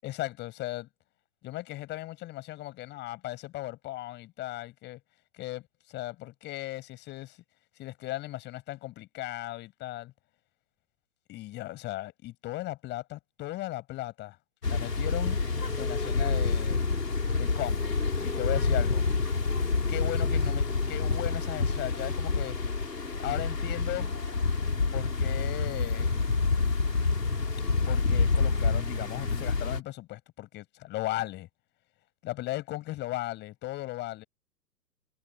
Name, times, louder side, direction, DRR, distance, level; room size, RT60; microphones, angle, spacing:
voice 1, 0.0-0.9 1.4-5.0 5.3-7.4 7.8-10.1 11.3-14.4 14.7-15.4 15.8-16.8 17.3-19.0 19.9-22.6 23.2-24.1 24.9-26.1 27.9-31.5 32.2-34.2, left 17 dB, 20° left, 7.2 m, -37 dB
sound 1, 14.6-29.8, left 4 dB, 75° left, 5.6 m, -28 dB
figure-of-eight pair, 120°, 48 cm